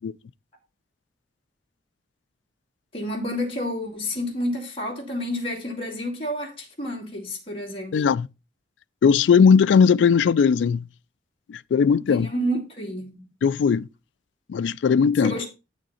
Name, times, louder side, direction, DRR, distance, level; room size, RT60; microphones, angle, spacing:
voice 1, 2.9-8.0 12.1-13.3 15.2-15.5, equal, 30° left, 2.6 m, -30 dB
voice 2, 7.9-8.3 9.0-10.8 11.5-12.3 13.4-13.9 14.5-15.4, left 6 dB, 85° left, 0.3 m, -18 dB
8.4 x 6.5 x 4.2 m
head